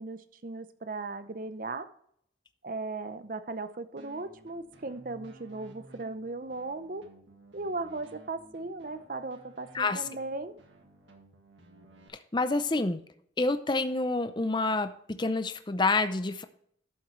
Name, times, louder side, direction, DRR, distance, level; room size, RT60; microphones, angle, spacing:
voice 1, 0.0-1.9 2.6-7.0 7.5-10.6, right 3 dB, 45° right, 11 dB, 0.6 m, -37 dB
sound 1, 4.0-12.1, right 1 dB, 75° right, 1.8 m, -55 dB
voice 2, 12.3-13.0 13.4-16.4, left 3 dB, 25° left, 10 dB, 0.5 m, -28 dB
11.5 x 7.6 x 3.1 m, 0.67 s
head